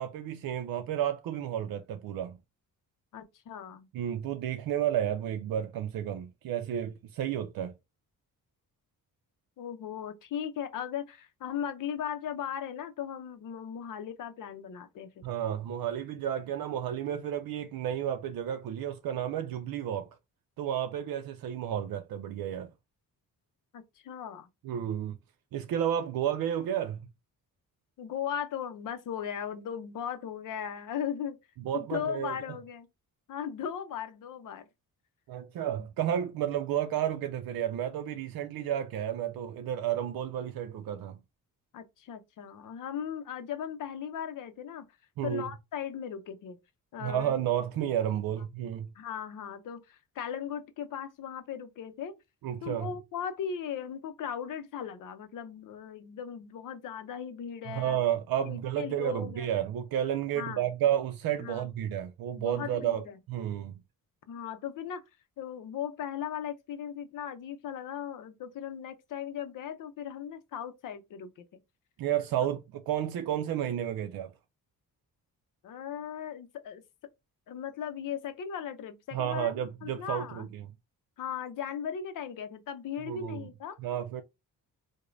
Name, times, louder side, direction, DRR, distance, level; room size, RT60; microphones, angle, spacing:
voice 1, 0.0-2.4 3.9-7.7 15.2-20.1 20.6-22.7 24.6-25.1 25.5-27.1 31.6-32.4 35.3-41.2 45.2-45.4 47.0-48.9 52.4-52.9 57.7-63.7 72.0-74.3 79.1-80.7 83.1-83.4 83.8-84.2, right 10 dB, 70° right, 0.5 m, -31 dB
voice 2, 3.1-3.9 9.6-15.2 23.7-24.5 28.0-31.4 31.7-32.9 33.3-34.7 41.7-44.8 45.2-46.6 46.9-47.4 49.0-52.2 52.6-58.0 58.4-59.5 60.3-60.7 61.4-61.7 62.4-63.2 64.3-65.0 65.4-71.4 75.6-76.8 77.5-79.5 79.8-80.5 81.2-83.8, left 8 dB, 60° left, 0.6 m, -37 dB
4.9 x 2.1 x 2.5 m
wide cardioid pair, 180°, 36 cm